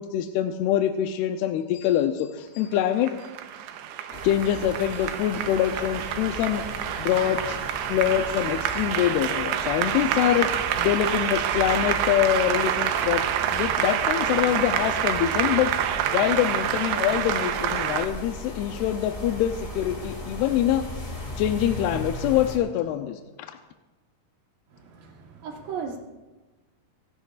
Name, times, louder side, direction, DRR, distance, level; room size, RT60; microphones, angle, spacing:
voice 1, 0.0-3.1 4.2-6.6 7.0-7.6 7.9-10.5 10.8-13.2 13.5-15.7 16.1-20.8 21.4-23.2, left 11 dB, 85° left, 6 dB, 2.7 m, -24 dB
Applause, 2.7-18.1, right 10 dB, 85° right, 2.8 m, -27 dB
sound 1, 4.1-22.6, left 1 dB, 20° left, 1.4 m, -38 dB
voice 2, 24.7-26.0, right 6 dB, 65° right, 2 dB, 2.8 m, -36 dB
27.0 x 12.5 x 2.4 m, 1.1 s
omnidirectional pair, 4.6 m